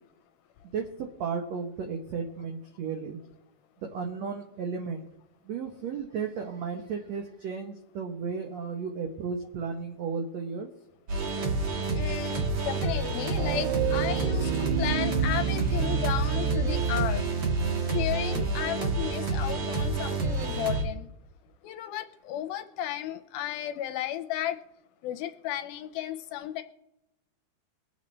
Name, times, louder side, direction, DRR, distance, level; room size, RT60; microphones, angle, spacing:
voice 1, 0.7-3.2 3.8-5.1 5.4-10.7, right 5 dB, 90° right, 4 dB, 1.5 m, -34 dB
sound 1, 11.1-20.8, right 3 dB, 55° right, 1.3 m, -29 dB
voice 2, 12.0-17.3 17.9-21.1 21.6-24.6 25.0-26.6, left 11 dB, 80° left, 8 dB, 2.3 m, -34 dB
sound 2, 13.4-17.3, right 9 dB, 70° right, 2.5 m, -29 dB
23.5 x 8.4 x 3.2 m, 0.90 s
omnidirectional pair, 4.6 m